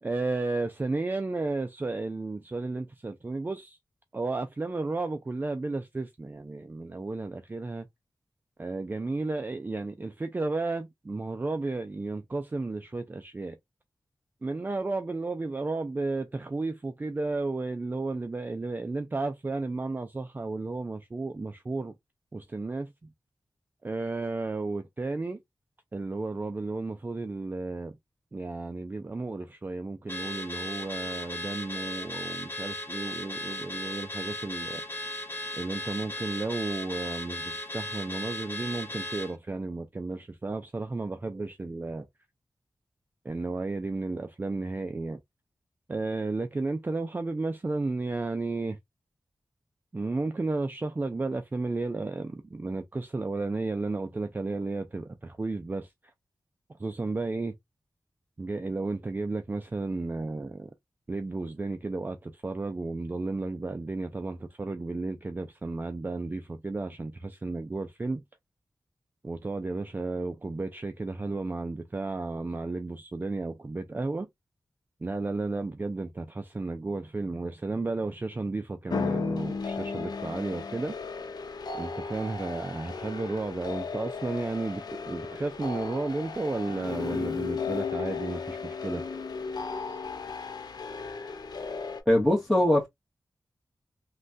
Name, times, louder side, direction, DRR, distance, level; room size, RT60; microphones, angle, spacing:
voice 1, 0.0-3.8 4.1-7.9 8.6-13.6 14.4-21.9 22.3-22.9 23.8-25.4 25.9-27.9 28.3-34.8 35.6-42.1 43.2-45.2 45.9-48.8 49.9-55.9 56.7-57.5 58.4-60.7 61.1-68.2 69.2-74.3 75.0-81.0 81.8-89.1, right 3 dB, 25° right, 0.4 m, -33 dB
Car / Alarm, 30.1-39.3, left 1 dB, 30° left, 0.6 m, -36 dB
sound 1, 78.9-92.0, left 5 dB, 75° left, 0.5 m, -35 dB
voice 2, 92.1-92.9, left 1 dB, ahead, 1.2 m, -21 dB
3.1 x 2.2 x 2.5 m
wide cardioid pair, 75°, 7 cm